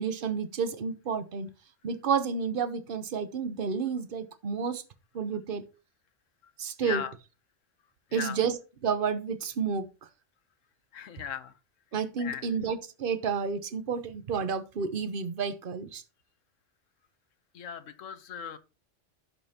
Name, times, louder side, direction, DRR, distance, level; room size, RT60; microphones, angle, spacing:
voice 1, 0.0-1.5 1.8-4.8 5.1-5.6 6.6-7.0 8.1-8.6 8.8-9.9 11.9-16.0, right 6 dB, 50° right, 0.9 m, -30 dB
voice 2, 6.8-7.1 8.1-8.4 10.9-11.6 12.2-12.5 17.5-18.6, left 8 dB, 85° left, 1.2 m, -37 dB
15.5 x 5.4 x 2.9 m
omnidirectional pair, 1.3 m